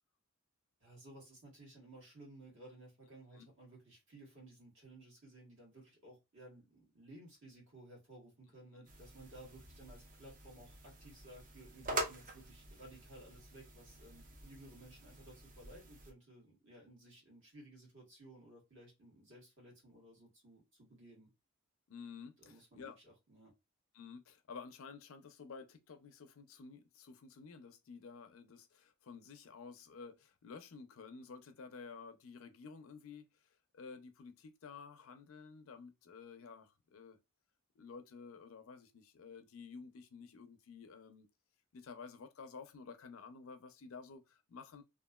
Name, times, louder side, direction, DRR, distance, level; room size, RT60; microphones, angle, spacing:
voice 1, 0.8-21.3 22.4-22.9 23.3-23.5, right 1 dB, 60° right, 1.6 m, -57 dB
sound 1, 8.8-16.1, right 2 dB, 40° right, 0.6 m, -46 dB
voice 2, 21.9-23.0 23.9-37.2 37.8-41.3 41.7-44.8, left 5 dB, 70° left, 0.5 m, -52 dB
2.9 x 2.4 x 2.2 m
head